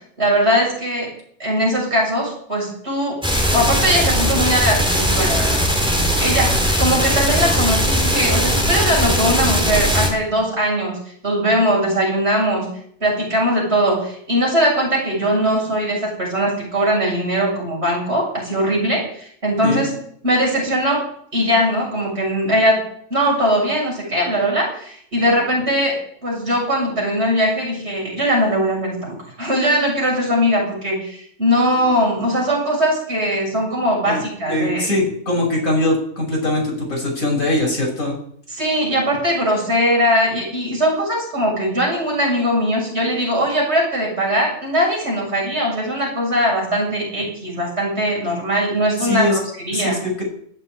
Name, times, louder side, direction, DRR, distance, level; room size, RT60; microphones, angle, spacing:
voice 1, 0.2-1.1 1.4-3.2 3.5-5.9 6.2-11.0 11.2-12.7 13.0-19.9 20.2-21.0 21.3-22.8 23.1-35.1 38.5-50.0, equal, 50° right, -3 dB, 7.6 m, -20 dB
sound 1, 3.2-10.1, equal, 5° right, 3.6 m, -19 dB
voice 2, 34.5-38.2 49.0-49.4 49.7-50.2, left 1 dB, 75° left, -1 dB, 6.5 m, -21 dB
20.0 x 7.6 x 9.2 m, 0.65 s
omnidirectional pair, 1.4 m